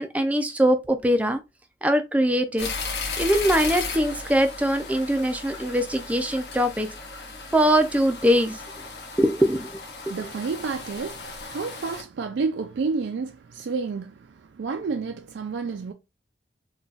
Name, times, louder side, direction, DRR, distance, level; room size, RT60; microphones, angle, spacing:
voice 1, 0.0-1.4 1.8-2.7 3.2-6.9 7.5-8.6 9.2-9.7, equal, 10° right, 0.3 m, -22 dB
sound 1, 2.6-12.0, left 4 dB, 70° left, 0.9 m, -35 dB
voice 2, 10.1-15.9, right 4 dB, 85° right, 0.4 m, -30 dB
3.9 x 2.3 x 2.3 m
head